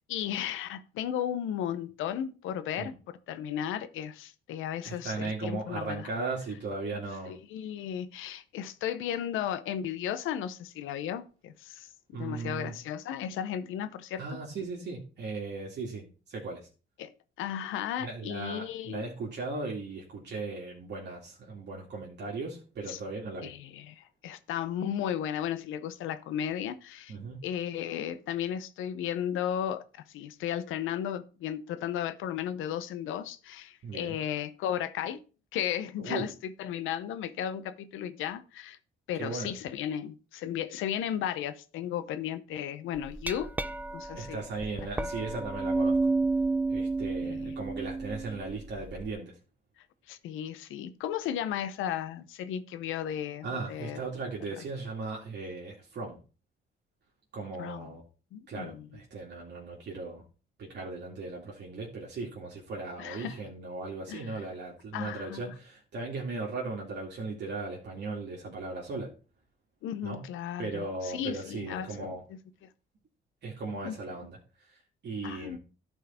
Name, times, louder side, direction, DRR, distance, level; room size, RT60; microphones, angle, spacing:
voice 1, 0.1-6.1 7.3-14.2 17.0-17.1 17.4-19.1 22.9-23.0 23.4-27.1 27.4-35.2 35.5-38.8 39.1-43.5 43.9-44.4 44.9-45.1 47.2-47.6 50.1-54.0 54.6-54.7 57.6-57.9 58.3-59.0 63.0-63.4 64.1-64.4 64.9-65.5 69.8-72.2 73.8-73.9 75.2-75.6, left 10 dB, 90° left, 0.8 m, -35 dB
voice 2, 4.8-7.3 12.1-12.7 14.2-16.7 18.0-23.5 27.1-27.4 33.8-34.2 36.0-36.3 39.2-39.5 44.1-46.1 46.7-49.4 53.4-56.2 57.3-58.0 58.5-60.2 60.6-69.1 70.0-70.2 70.6-72.2 73.4-75.6, right 3 dB, 60° right, 2.3 m, -37 dB
Glass, 43.0-49.1, right 3 dB, 10° right, 0.5 m, -31 dB
11.5 x 4.6 x 4.3 m
cardioid pair, 90°, 20 cm